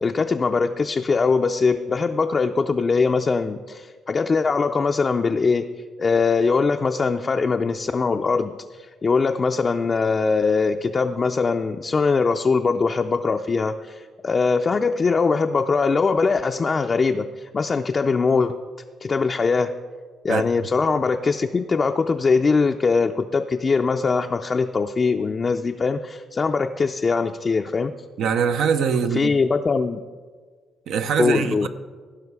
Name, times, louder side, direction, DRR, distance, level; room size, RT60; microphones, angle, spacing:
voice 1, 0.0-5.7 6.0-8.5 8.8-18.6 19.0-19.7 20.2-27.9 29.2-30.0 31.2-31.7, left 4 dB, 35° left, 0.4 m, -21 dB
voice 2, 28.2-29.4 30.9-31.7, right 6 dB, 80° right, 0.7 m, -22 dB
16.0 x 5.8 x 4.7 m
cardioid pair, 90°, 0 cm